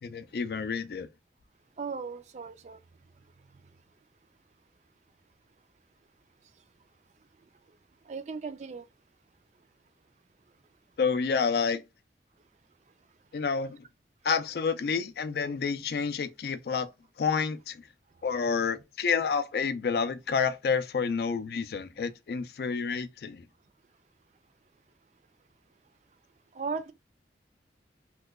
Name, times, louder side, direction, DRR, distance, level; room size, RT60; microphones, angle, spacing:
voice 1, 0.0-1.1 11.0-11.8 13.3-13.8 14.2-16.9 17.2-17.9 18.2-23.4, left 5 dB, 60° left, 0.4 m, -29 dB
voice 2, 1.8-2.8 8.1-8.8 26.5-26.9, right 5 dB, 40° right, 0.3 m, -36 dB
2.9 x 2.2 x 3.4 m
head